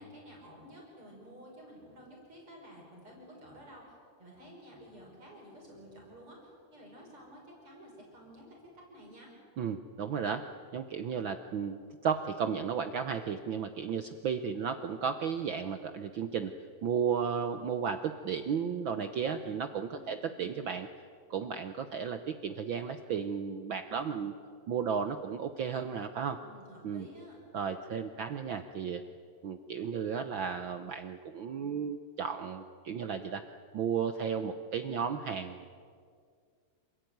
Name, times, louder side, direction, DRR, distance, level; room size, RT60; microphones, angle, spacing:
voice 1, 0.0-9.3 19.9-20.2 26.4-27.4, equal, 45° right, -2 dB, 6.2 m, -52 dB
voice 2, 9.6-10.4 10.7-16.5 16.8-20.9 21.3-24.3 24.7-26.4 26.8-27.1 27.5-29.0 29.4-33.4 33.7-35.7, right 7 dB, 75° right, 8 dB, 1.1 m, -34 dB
28.0 x 16.0 x 9.4 m, 2.1 s
omnidirectional pair, 3.3 m